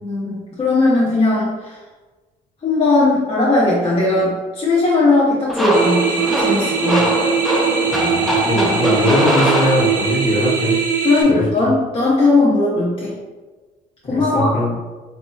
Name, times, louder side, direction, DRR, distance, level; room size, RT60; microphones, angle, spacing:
voice 1, 0.0-1.7 2.6-7.2 8.5-9.1 11.0-13.1 14.1-14.5, left 2 dB, 35° left, -7 dB, 0.9 m, -18 dB
sound 1, 5.5-10.3, equal, ahead, 0.6 m, -21 dB
sound 2, 5.7-11.2, right 6 dB, 55° right, 0.7 m, -21 dB
voice 2, 7.9-10.8 11.2-11.7 14.1-14.7, left 1 dB, 55° left, -6 dB, 1.4 m, -21 dB
4.1 x 2.9 x 2.3 m, 1.3 s
cardioid pair, 110°, 17 cm